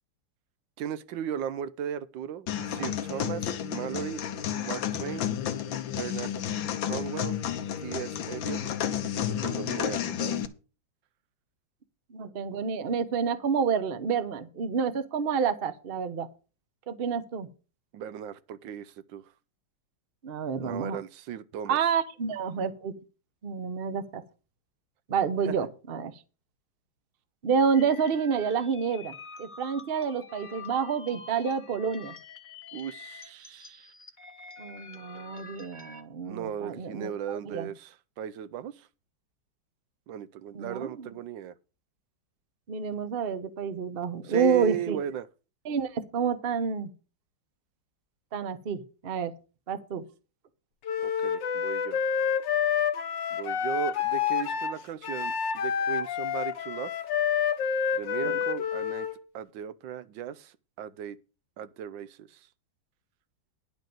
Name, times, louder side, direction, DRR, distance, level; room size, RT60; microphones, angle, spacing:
voice 1, 0.8-4.2 4.6-5.3 5.9-6.3 6.8-7.4 7.8-8.8 9.3-10.5 17.9-19.3 20.6-21.8 25.4-25.6 32.7-33.9 36.3-38.9 40.1-41.5 44.2-45.3 51.0-52.1 53.3-57.0 57.9-59.1 59.3-61.2 61.6-62.5, right 9 dB, 75° right, 1.3 m, -37 dB
sound 1, 2.5-10.5, left 9 dB, 90° left, 1.7 m, -31 dB
voice 2, 12.1-16.3 16.9-17.5 20.2-21.0 21.7-22.9 23.4-24.2 25.1-26.1 27.4-32.1 34.6-37.7 40.5-41.1 42.7-45.0 45.6-46.9 48.3-49.3 49.7-50.0 58.2-58.4, right 6 dB, 45° right, 0.8 m, -29 dB
sound 2, 27.7-36.0, left 4 dB, 30° left, 1.2 m, -47 dB
Wind instrument woodwind instrument, 50.8-59.2, left 7 dB, 70° left, 1.5 m, -28 dB
10.5 x 5.2 x 7.6 m
omnidirectional pair, 2.1 m